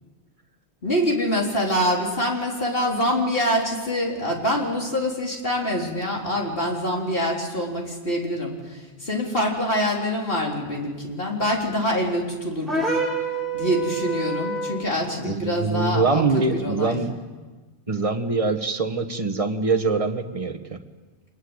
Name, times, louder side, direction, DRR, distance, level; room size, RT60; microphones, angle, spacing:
voice 1, 0.8-13.0 13.5-17.0, equal, 55° left, -1 dB, 4.2 m, -25 dB
sound 1, 12.7-14.9, right 3 dB, ahead, 4.9 m, -27 dB
voice 2, 15.2-17.1 17.9-20.8, right 4 dB, 30° right, 7 dB, 1.4 m, -24 dB
25.5 x 20.5 x 8.0 m, 1.3 s
omnidirectional pair, 1.2 m